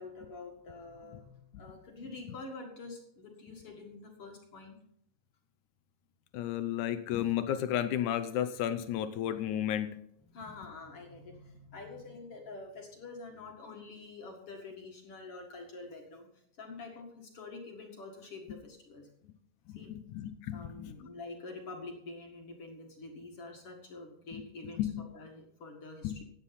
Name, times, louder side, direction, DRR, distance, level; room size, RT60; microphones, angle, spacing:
voice 1, 0.0-4.8 10.2-19.1 19.7-19.9 20.5-26.2, left 3 dB, 45° left, 1 dB, 2.1 m, -47 dB
voice 2, 6.3-9.9 19.7-20.9 24.8-24.9 26.0-26.1, left 11 dB, 85° left, 10 dB, 1.7 m, -32 dB
14.5 x 9.8 x 4.1 m, 0.72 s
omnidirectional pair, 4.4 m